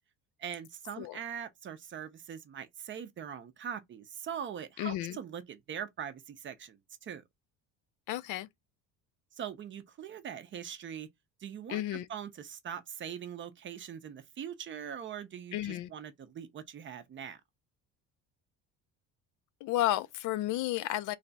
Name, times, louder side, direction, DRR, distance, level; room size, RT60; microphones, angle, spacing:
voice 1, 0.4-7.2 9.3-11.1 11.4-17.4, right 8 dB, 35° right, 0.5 m, -42 dB
voice 2, 4.8-5.2 8.1-8.5 11.7-12.1 15.5-15.9 19.6-21.2, left 14 dB, 60° left, 0.5 m, -32 dB
3.2 x 2.3 x 3.9 m
cardioid pair, 135°, 34 cm